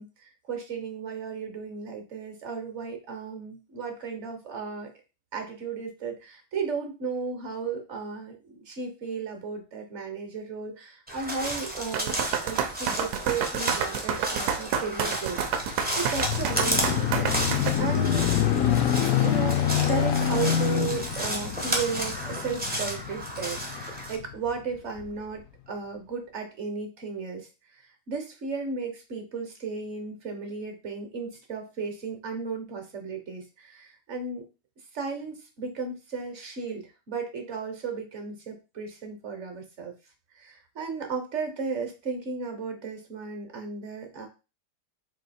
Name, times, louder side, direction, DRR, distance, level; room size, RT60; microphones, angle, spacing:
voice 1, 0.0-4.9 5.3-18.3 19.2-34.4 34.9-39.9 40.3-44.3, right 5 dB, 50° right, 4 dB, 1.0 m, -35 dB
Crow, 11.1-24.2, right 1 dB, 15° right, 0.4 m, -33 dB
sound 1, 11.9-17.8, right 7 dB, 75° right, 1.1 m, -29 dB
sound 2, 15.6-24.4 25.0-25.1, left 10 dB, 70° left, 0.8 m, -26 dB
3.9 x 2.6 x 4.1 m, 0.30 s
omnidirectional pair, 1.8 m